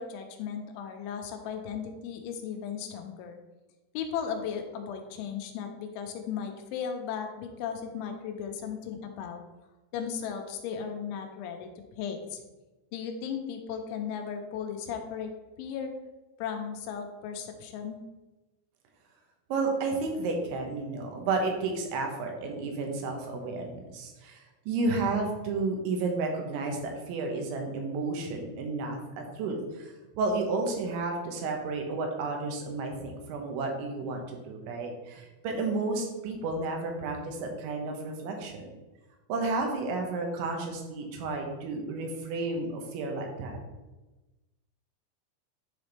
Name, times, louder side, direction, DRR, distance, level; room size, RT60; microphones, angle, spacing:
voice 1, 0.0-3.4 3.9-9.4 9.9-11.7 12.0-12.4 12.9-15.3 15.6-15.9 16.4-18.0, left 7 dB, 85° left, 5 dB, 3.2 m, -36 dB
voice 2, 19.5-38.7 39.3-43.6, right 3 dB, 80° right, 2 dB, 3.4 m, -32 dB
9.8 x 4.1 x 3.4 m, 1.1 s
omnidirectional pair, 5.3 m